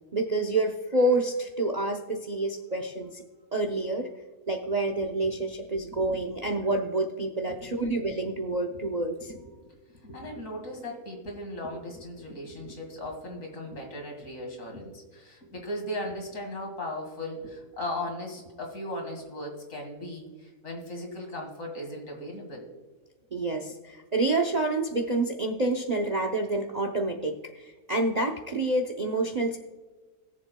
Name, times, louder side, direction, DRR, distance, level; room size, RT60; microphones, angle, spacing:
voice 1, 0.1-3.2 3.5-4.1 4.5-9.3 23.3-29.6, right 2 dB, 40° right, 4 dB, 0.6 m, -28 dB
voice 2, 5.9-6.2 7.5-7.8 8.7-8.8 9.3-9.4 9.9-22.7, left 1 dB, 60° left, 1 dB, 2.4 m, -37 dB
21.5 x 7.3 x 2.2 m, 1.4 s
omnidirectional pair, 1.6 m